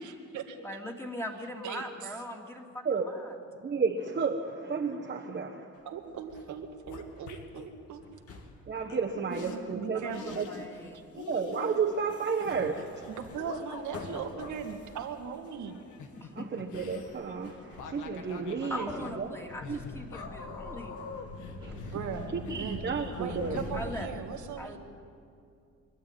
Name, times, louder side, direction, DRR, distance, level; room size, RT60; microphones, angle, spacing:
voice 1, 0.0-0.6 1.6-2.1 5.9-8.0 9.3-10.4 13.1-15.8 21.7-24.8, right 7 dB, 75° right, 3 dB, 1.9 m, -39 dB
voice 2, 0.6-3.3 9.9-11.0 16.1-16.5 18.7-21.1 23.7-24.1 24.6-24.8, equal, 10° left, 1 dB, 2.8 m, -40 dB
voice 3, 3.6-5.7 8.7-10.5 10.8-13.1 16.3-18.9 19.2-19.3 19.7-19.8 21.6-22.0 22.3-23.6, right 5 dB, 35° right, -1 dB, 1.4 m, -32 dB
sound 1, 5.7-6.5 6.9-7.3 8.0-8.9 10.0-10.2 10.6-11.2 11.5-11.8 12.1-16.2 16.7-24.1, left 3 dB, 50° left, 2.5 m, -45 dB
sound 2, 6.0-6.2 6.5-7.7 8.9-9.0 9.3-9.6 10.1-10.9 11.2-14.5 15.7-23.2 23.5-23.7, left 5 dB, 80° left, 1.8 m, -45 dB
24.0 x 12.0 x 9.2 m, 2.4 s
cardioid pair, 90°, 30 cm